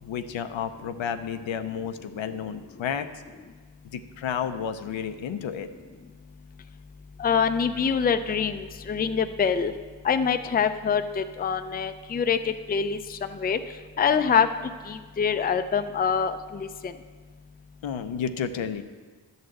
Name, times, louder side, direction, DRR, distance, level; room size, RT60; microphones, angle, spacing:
voice 1, 0.0-3.1 3.9-5.7 17.8-18.8, left 7 dB, 80° left, 9 dB, 0.7 m, -31 dB
voice 2, 7.2-9.7 10.0-13.6 14.0-14.5 14.9-16.9, left 6 dB, 20° left, 9 dB, 0.4 m, -25 dB
11.0 x 4.1 x 7.7 m, 1.5 s
cardioid pair, 80°, 45 cm